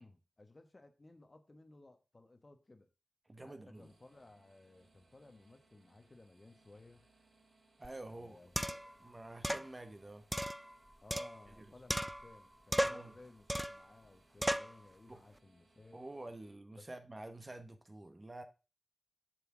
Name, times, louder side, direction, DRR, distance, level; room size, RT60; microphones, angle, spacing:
voice 1, 0.0-2.9 3.4-7.1 8.1-9.0 11.0-16.0 16.7-16.9, left 2 dB, 30° left, 1.1 m, -59 dB
voice 2, 3.3-3.9 7.8-8.4 8.7-10.3 11.6-11.7 12.8-13.1 15.1-15.2 15.9-18.4, right 2 dB, 25° right, 1.0 m, -49 dB
sound 1, 3.7-16.5, right 2 dB, 75° right, 3.5 m, -71 dB
sound 2, 7.8-7.9 8.6-8.9 9.4-9.7 10.3-11.6 11.9-12.4 12.7-13.1 13.5-13.9 14.4-14.8, equal, 5° right, 0.3 m, -36 dB
7.2 x 6.8 x 3.7 m
wide cardioid pair, 100°, 0 cm